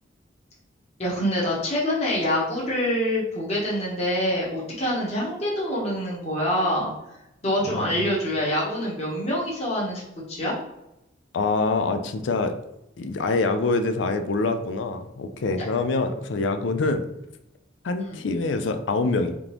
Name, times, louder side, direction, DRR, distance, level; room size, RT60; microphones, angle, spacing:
voice 1, 1.0-6.9 7.4-10.0 10.3-10.5 18.1-18.2, equal, 35° left, -5 dB, 1.1 m, -25 dB
voice 2, 7.7-8.1 11.3-12.5 13.0-17.0 17.8-19.3, left 3 dB, 75° left, 8 dB, 0.4 m, -25 dB
3.7 x 3.6 x 3.0 m, 0.85 s
head